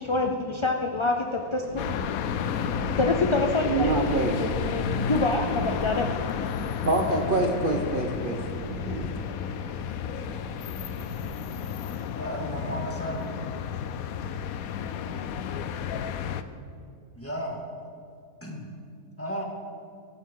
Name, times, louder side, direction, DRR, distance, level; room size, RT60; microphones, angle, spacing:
voice 1, 0.0-1.9 3.0-6.1, left 3 dB, 45° left, 3 dB, 0.3 m, -26 dB
sound 1, 1.7-11.4, right 3 dB, 85° right, 1.6 m, -40 dB
sound 2, 1.8-16.4, left 8 dB, 75° left, 1.1 m, -32 dB
voice 2, 3.6-4.5 6.8-9.1, right 2 dB, 40° right, 2 dB, 1.0 m, -26 dB
voice 3, 12.1-13.4 17.1-17.6 18.4-18.7 19.2-19.4, equal, 10° left, -1 dB, 2.1 m, -33 dB
21.5 x 11.0 x 3.8 m, 2.5 s
omnidirectional pair, 1.5 m